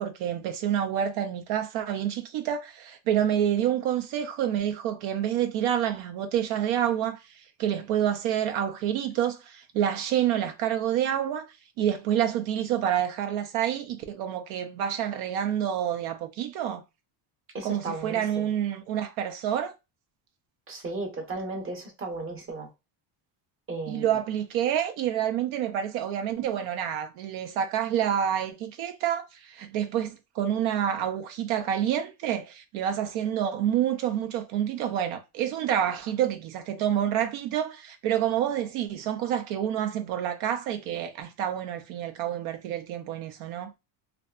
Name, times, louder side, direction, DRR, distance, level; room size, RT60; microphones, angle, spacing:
voice 1, 0.0-16.8 17.6-19.7 23.9-43.7, right 10 dB, 80° right, 0.6 m, -28 dB
voice 2, 17.5-18.4 20.7-22.7 23.7-24.1, right 3 dB, 25° right, 0.8 m, -35 dB
2.6 x 2.3 x 2.3 m
cardioid pair, 145°, 48 cm